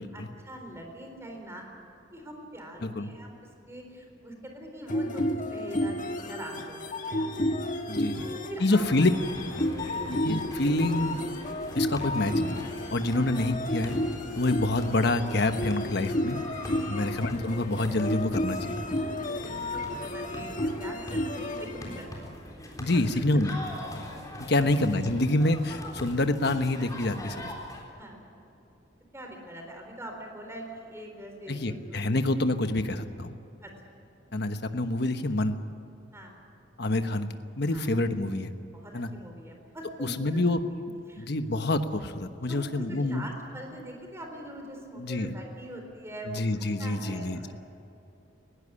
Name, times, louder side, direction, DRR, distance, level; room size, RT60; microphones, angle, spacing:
voice 1, 0.1-1.6 2.1-7.3 8.1-8.9 9.8-10.1 13.2-13.3 19.0-20.5 20.8-22.5 24.3-24.5 27.9-28.2 29.1-32.2 33.6-33.7 36.1-36.3 37.7-37.9 38.7-40.6 41.1-41.3 42.4-47.6, right 1 dB, 15° right, 2 dB, 4.0 m, -43 dB
voice 2, 2.8-3.1 7.9-8.2 8.6-9.1 10.1-11.2 11.7-14.0 14.3-16.4 16.9-18.8 22.8-23.7 24.5-27.5 31.5-33.3 34.3-35.6 36.8-38.5 38.9-39.1 40.0-40.6 41.2-43.3 45.0-45.3 46.3-47.6, left 2 dB, 60° left, 8 dB, 1.2 m, -27 dB
sound 1, 4.9-22.1, left 1 dB, 40° left, 1.5 m, -32 dB
sound 2, 8.8-27.8, left 1 dB, 20° left, 3.8 m, -42 dB
20.0 x 16.5 x 9.8 m, 2.8 s
head